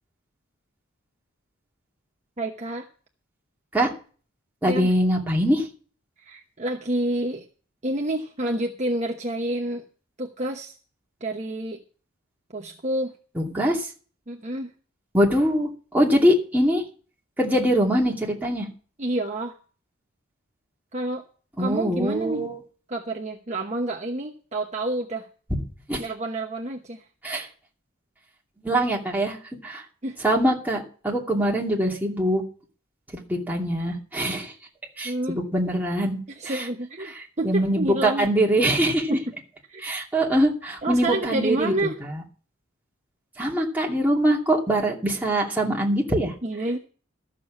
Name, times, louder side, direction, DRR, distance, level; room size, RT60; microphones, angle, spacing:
voice 1, 2.4-2.9 4.6-4.9 6.2-7.4 7.8-9.8 10.2-10.8 11.2-11.8 12.5-13.1 14.3-14.7 19.0-19.5 20.9-21.2 21.6-22.4 22.9-25.3 26.0-27.0 30.0-30.2 35.0-35.4 36.3-38.3 39.1-39.3 39.7-39.8 40.8-42.0 46.4-46.8, right 1 dB, 35° right, 2 dB, 1.1 m, -28 dB
voice 2, 4.6-5.7 13.4-13.9 15.1-16.8 17.4-18.7 21.6-22.6 25.9-26.0 27.2-27.5 28.6-29.4 29.6-29.8 30.2-32.4 33.3-34.5 35.0-36.2 36.5-36.6 37.4-39.2 39.8-41.7 43.4-46.3, right 1 dB, 10° right, -3 dB, 2.7 m, -23 dB
13.5 x 6.9 x 7.4 m, 0.39 s
head